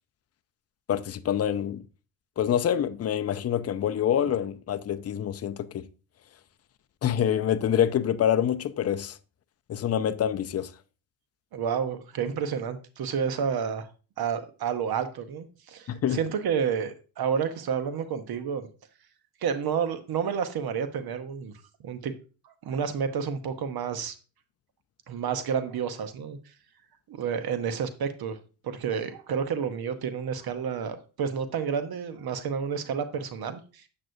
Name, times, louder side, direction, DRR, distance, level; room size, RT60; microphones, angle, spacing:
voice 1, 0.9-1.8 2.4-5.9 7.0-9.2 9.7-10.7 15.9-16.2, left 9 dB, 35° left, 0.5 m, -26 dB
voice 2, 11.5-13.9 14.2-18.7 19.4-22.1 22.4-24.1 25.1-26.4 27.1-28.4 28.6-33.9, right 7 dB, 50° right, 1.0 m, -30 dB
7.5 x 6.2 x 2.6 m
supercardioid pair, 75°, 47 cm